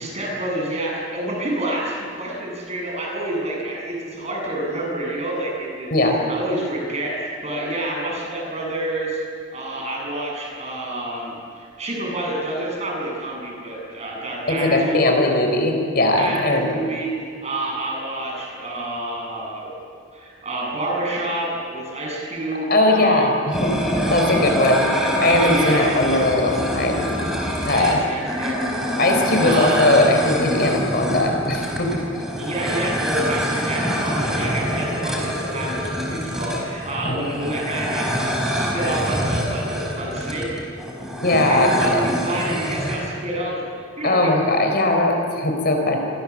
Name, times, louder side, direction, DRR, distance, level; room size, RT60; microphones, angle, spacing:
voice 1, 0.0-9.2 9.5-15.1 16.2-19.7 20.1-23.3 25.4-25.9 27.6-29.0 29.4-29.8 32.4-40.5 41.5-43.6 44.0-44.3, right 1 dB, 30° right, -2 dB, 7.8 m, -28 dB
voice 2, 14.5-16.8 22.7-23.7 24.1-24.9 25.2-27.1 27.6-28.0 29.0-32.0 37.0-37.2 41.2-41.9 44.0-46.0, left 2 dB, 45° left, 3 dB, 4.0 m, -19 dB
sound 1, 23.5-43.0, equal, ahead, 4.7 m, -25 dB
29.5 x 24.0 x 7.4 m, 2.3 s
head